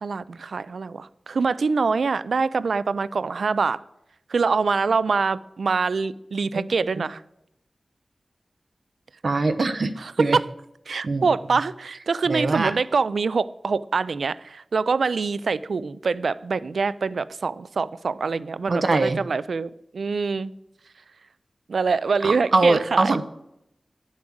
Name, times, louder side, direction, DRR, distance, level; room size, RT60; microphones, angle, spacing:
voice 1, 0.0-3.8 4.3-7.2 10.0-10.5 10.9-20.5 21.7-23.2, right 4 dB, 85° right, 18 dB, 0.4 m, -25 dB
voice 2, 9.2-9.9 10.2-10.4 11.0-11.3 12.3-12.7 18.7-19.2 22.2-23.2, right 3 dB, 65° right, 10 dB, 0.8 m, -22 dB
9.8 x 7.3 x 6.2 m, 0.82 s
wide cardioid pair, 70°, 0 cm